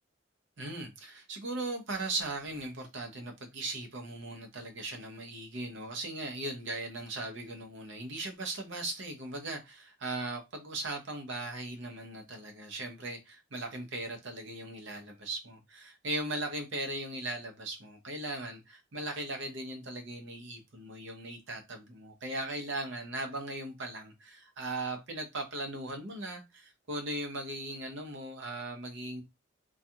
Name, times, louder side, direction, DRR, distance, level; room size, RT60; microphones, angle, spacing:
voice 1, 0.6-29.2, right 2 dB, 65° right, 0.7 m, -38 dB
2.3 x 2.3 x 2.7 m
head